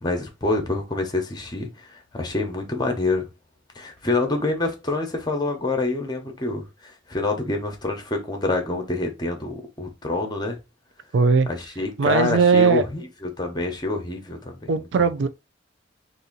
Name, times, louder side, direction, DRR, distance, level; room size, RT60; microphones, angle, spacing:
voice 1, 0.0-3.3 3.7-10.6 11.5-14.7, left 2 dB, 25° left, 0.8 m, -27 dB
voice 2, 11.1-11.5 12.0-12.8 14.7-15.3, right 5 dB, 85° right, 0.4 m, -18 dB
2.7 x 2.6 x 3.8 m
head